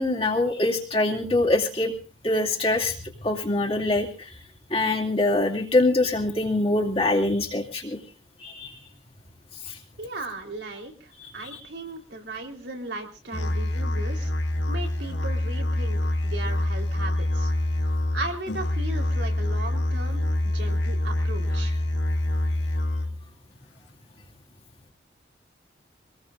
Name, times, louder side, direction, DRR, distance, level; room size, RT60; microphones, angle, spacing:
voice 1, 0.0-1.9 2.2-2.9 3.2-4.1 4.7-8.0 8.4-8.7 9.7-9.8 11.2-11.6, left 2 dB, 30° left, -2 dB, 2.5 m, -24 dB
voice 2, 10.0-14.3 14.7-17.5 18.1-20.3 20.5-21.7, right 2 dB, 75° right, 2 dB, 3.9 m, -37 dB
Musical instrument, 13.3-23.3, left 1 dB, 80° left, 1.8 m, -26 dB
25.0 x 19.5 x 2.6 m, 0.37 s
head